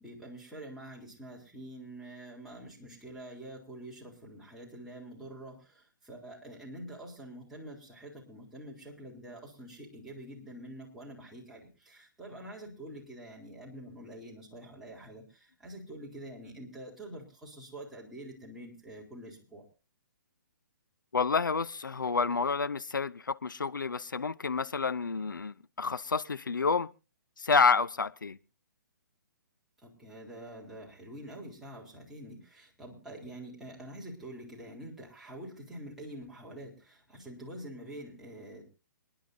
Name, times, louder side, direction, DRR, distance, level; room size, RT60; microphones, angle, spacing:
voice 1, 0.0-19.7 29.8-38.7, right 1 dB, 5° right, 3.7 m, -46 dB
voice 2, 21.1-26.9 27.4-28.4, left 5 dB, 80° left, 0.6 m, -29 dB
28.5 x 10.5 x 2.7 m
figure-of-eight pair, 130°, 11 cm